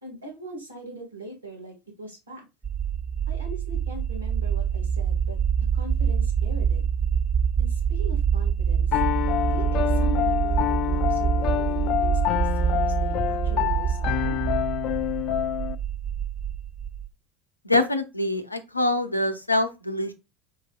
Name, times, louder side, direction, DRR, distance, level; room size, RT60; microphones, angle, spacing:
voice 1, 0.0-2.5 3.3-5.4 5.7-6.8 7.6-9.0 9.4-14.4, right 1 dB, 80° right, 0 dB, 2.0 m, -41 dB
sound 1, 2.6-17.1, right 7 dB, 25° right, 0.9 m, -25 dB
Piano, 8.9-15.7, left 13 dB, 50° left, 0.4 m, -27 dB
voice 2, 17.6-20.1, left 2 dB, 90° left, 9 dB, 0.6 m, -24 dB
4.7 x 4.7 x 2.4 m, 0.25 s
figure-of-eight pair, 70°, 0 cm